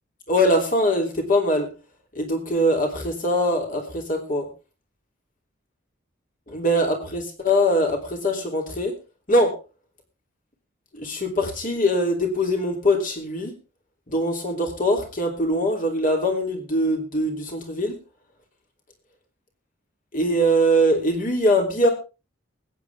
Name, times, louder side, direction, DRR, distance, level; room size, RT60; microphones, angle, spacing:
voice 1, 0.3-1.7 2.1-4.5 6.5-8.9 9.3-9.5 10.9-13.5 14.1-17.9 20.1-21.9, equal, 45° left, 3 dB, 3.2 m, -22 dB
20.0 x 9.2 x 3.5 m, 0.30 s
head